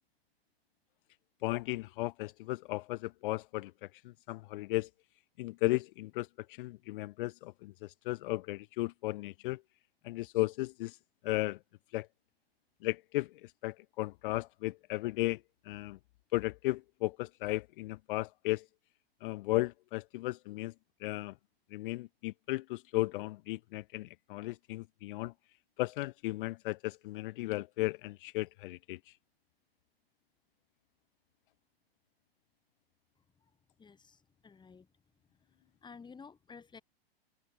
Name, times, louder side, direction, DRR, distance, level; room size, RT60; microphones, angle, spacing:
voice 1, 1.4-4.9 5.4-9.6 10.0-11.0 11.2-11.6 11.9-12.1 12.8-16.0 16.3-18.7 19.2-20.7 21.0-21.3 21.7-25.3 25.8-29.1, left 19 dB, 55° left, 2.2 m, -35 dB
voice 2, 33.8-34.9 35.8-36.8, left 5 dB, 15° left, 4.4 m, -52 dB
open air
hypercardioid pair, 115°, 31 cm